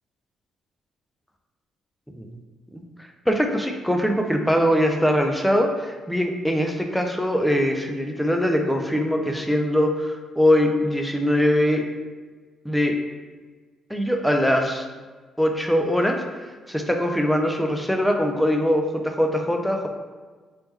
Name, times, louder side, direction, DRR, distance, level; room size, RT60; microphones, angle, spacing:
voice 1, 3.3-11.8 12.6-13.0 13.9-14.9 15.4-16.2 16.4-19.9, equal, ahead, 3 dB, 0.3 m, -22 dB
3.4 x 3.1 x 3.1 m, 1.4 s
cardioid pair, 165°, 0 cm